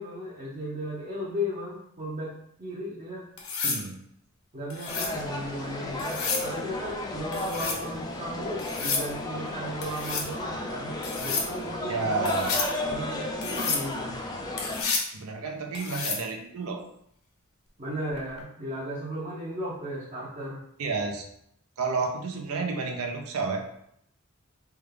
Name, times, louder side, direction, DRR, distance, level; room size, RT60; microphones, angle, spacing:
voice 1, 0.0-2.3 2.6-3.2 4.5-12.3 12.9-14.1 17.8-20.6, equal, 35° right, -7 dB, 0.7 m, -35 dB
sound 1, 3.4-3.8 4.7-5.2 6.0-6.5 7.3-7.8 8.6-9.1 9.8-10.3 11.0-11.5 12.3-12.7 13.4-13.8 14.6-15.1 15.7-16.2 18.2-18.4, left 4 dB, 75° left, 0.7 m, -30 dB
voice 2, 3.6-4.0 11.9-12.5 15.1-16.8 20.8-21.2 21.8-23.6, right 4 dB, 85° right, 2 dB, 0.5 m, -30 dB
sound 2, 4.9-14.8, left 2 dB, 20° left, 0.4 m, -34 dB
3.4 x 2.3 x 3.3 m, 0.71 s
head